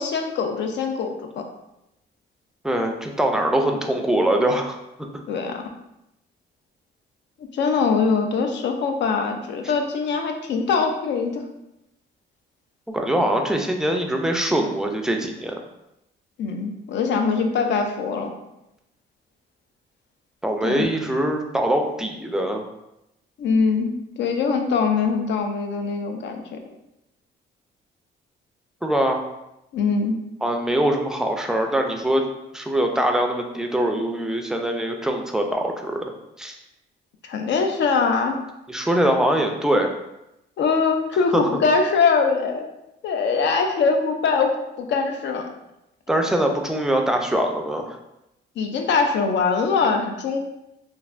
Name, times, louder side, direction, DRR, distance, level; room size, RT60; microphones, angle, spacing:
voice 1, 0.0-1.5 5.3-5.6 7.4-11.4 16.4-18.3 20.6-20.8 23.4-26.6 29.7-30.2 37.2-38.4 40.6-42.6 43.0-45.5 48.6-50.4, left 5 dB, 65° left, 4 dB, 0.5 m, -22 dB
voice 2, 2.6-4.8 12.9-15.5 20.4-22.6 28.8-29.2 30.4-32.2 32.5-36.1 36.4-36.6 38.7-39.9 41.3-41.4 46.1-48.0, right 1 dB, 5° right, 3 dB, 0.4 m, -22 dB
3.2 x 2.5 x 2.4 m, 0.89 s
cardioid pair, 90°, 20 cm